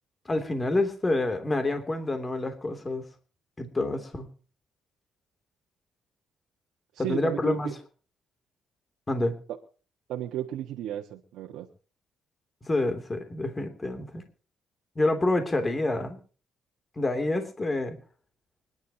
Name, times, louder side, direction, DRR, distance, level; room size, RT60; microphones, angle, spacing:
voice 1, 0.2-3.1 3.6-4.3 7.0-7.7 9.1-9.4 12.6-14.2 14.9-16.2 17.0-18.0, left 2 dB, 25° left, 7 dB, 3.1 m, -27 dB
voice 2, 6.9-7.7 10.1-11.7, right 11 dB, 85° right, 0 dB, 1.6 m, -34 dB
25.5 x 11.0 x 3.0 m, 0.39 s
cardioid pair, 90°, 0 cm